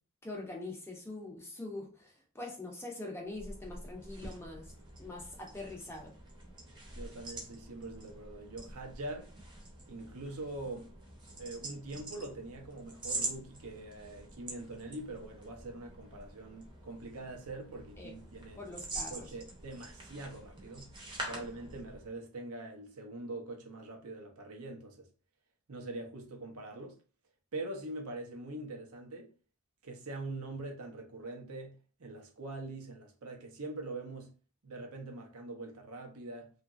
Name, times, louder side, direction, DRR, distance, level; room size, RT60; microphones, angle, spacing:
voice 1, 0.2-4.7 5.0-6.1 18.0-18.1 18.6-19.3 21.3-21.4, left 2 dB, 10° left, 0.6 m, -43 dB
sound 1, 3.2-22.2, right 2 dB, 20° right, 0.7 m, -45 dB
voice 2, 6.9-9.3 9.9-10.9 11.3-18.6 19.1-20.9 21.3-25.1 25.7-26.9 27.5-29.3 29.8-34.3 34.6-36.5, right 2 dB, 75° right, 0.7 m, -43 dB
2.9 x 2.4 x 2.4 m
head